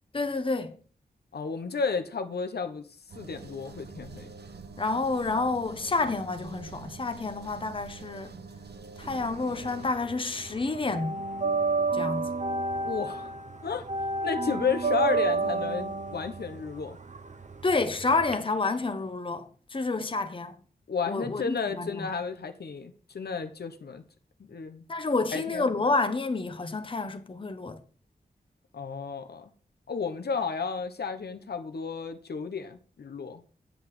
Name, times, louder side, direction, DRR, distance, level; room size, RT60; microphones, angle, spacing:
voice 1, 0.1-0.8 4.8-8.4 9.0-11.2 11.9-12.3 17.6-20.5 21.1-22.1 24.9-27.8, left 3 dB, 30° left, 1.0 m, -29 dB
voice 2, 1.3-2.8 3.1-4.3 12.8-13.4 13.6-13.9 14.2-17.0 20.9-24.0 24.4-24.8 25.3-25.7 28.7-29.5 29.9-33.4, left 5 dB, 80° left, 1.1 m, -32 dB
sound 1, 3.1-9.9, right 4 dB, 85° right, 1.1 m, -45 dB
sound 2, 9.1-10.2 10.4-18.3, right 3 dB, 45° right, 0.9 m, -30 dB
8.3 x 7.9 x 5.0 m
wide cardioid pair, 105°, 17 cm